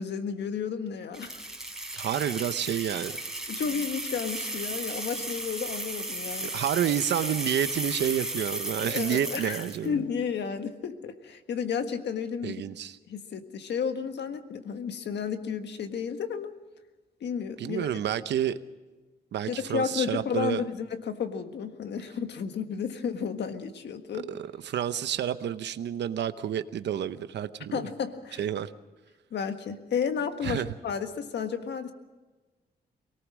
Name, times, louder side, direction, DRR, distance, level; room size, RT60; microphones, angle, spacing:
voice 1, 0.0-1.4 3.5-6.5 8.8-12.6 13.1-16.5 17.2-17.9 19.5-24.3 27.7-28.5 29.3-31.9, left 7 dB, 80° left, 7 dB, 1.6 m, -32 dB
sound 1, 1.1-9.9, right 1 dB, 5° right, 4.0 m, -35 dB
voice 2, 1.9-3.2 6.4-10.0 12.4-13.0 17.6-18.6 19.3-20.6 24.3-27.9 28.4-28.7 30.4-30.7, right 10 dB, 85° right, 12 dB, 0.8 m, -29 dB
24.0 x 18.5 x 6.3 m, 1.2 s
cardioid pair, 110°, 18 cm